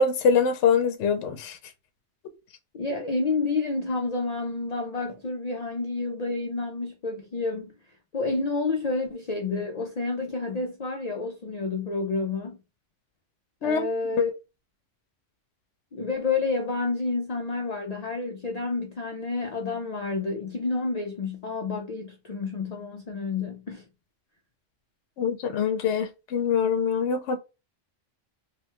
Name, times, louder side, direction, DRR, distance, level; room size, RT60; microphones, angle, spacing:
voice 1, 0.0-1.6 13.6-13.8 25.2-27.4, left 5 dB, 70° left, 0.9 m, -24 dB
voice 2, 2.7-7.8 8.1-12.6 13.6-14.3 15.9-23.8, left 3 dB, 55° left, 0.4 m, -29 dB
2.9 x 2.2 x 2.9 m
omnidirectional pair, 1.3 m